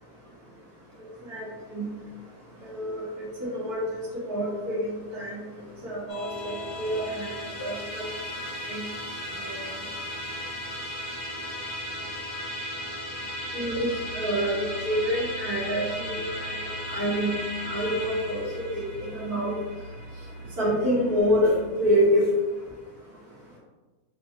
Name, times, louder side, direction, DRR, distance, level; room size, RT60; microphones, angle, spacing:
voice 1, 1.3-1.9 2.6-3.0 3.4-4.0 4.3-5.4 5.8-7.3 7.6-8.0 8.7-8.8 9.5-9.6 13.5-16.2 16.9-17.4 17.7-19.5 20.6-21.5 21.8-22.3, equal, 90° right, -7 dB, 1.9 m, -27 dB
Musical instrument, 6.1-21.6, left 1 dB, 45° left, 0.6 m, -36 dB
sound 1, 13.6-21.2, right 2 dB, 75° right, 1.0 m, -43 dB
5.4 x 2.2 x 2.8 m, 1.2 s
omnidirectional pair, 1.6 m